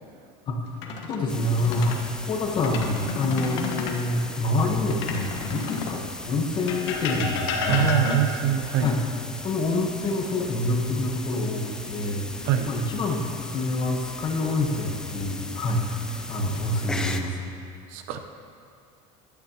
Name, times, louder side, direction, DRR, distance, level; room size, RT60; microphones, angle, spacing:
sound 1, 0.7-2.0 2.5-4.0 4.9-6.0 6.7-8.5 10.4-11.1 11.5-11.7 14.6-15.2 15.9-16.6, left 4 dB, 75° left, 1.5 m, -32 dB
voice 1, 1.1-2.0 2.3-8.0 8.8-9.0 9.4-12.3 12.7-15.8 16.3-17.4, left 2 dB, 30° left, 1 dB, 1.2 m, -26 dB
sound 2, 1.3-17.2, left 2 dB, 5° left, 0.4 m, -38 dB
voice 2, 7.7-8.9 12.4-12.7 17.9-18.2, right 9 dB, 60° right, 7 dB, 0.9 m, -24 dB
16.0 x 12.0 x 3.0 m, 2.4 s
cardioid pair, 170°, 15 cm